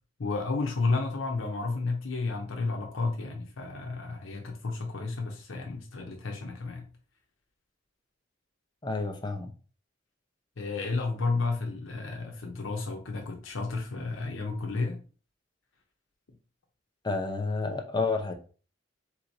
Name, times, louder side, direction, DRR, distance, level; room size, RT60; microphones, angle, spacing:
voice 1, 0.2-6.8 10.6-15.0, left 3 dB, 90° left, 2 dB, 0.8 m, -32 dB
voice 2, 8.8-9.5 17.0-18.3, left 3 dB, 20° left, 3 dB, 0.7 m, -30 dB
3.8 x 3.1 x 4.0 m, 0.38 s
head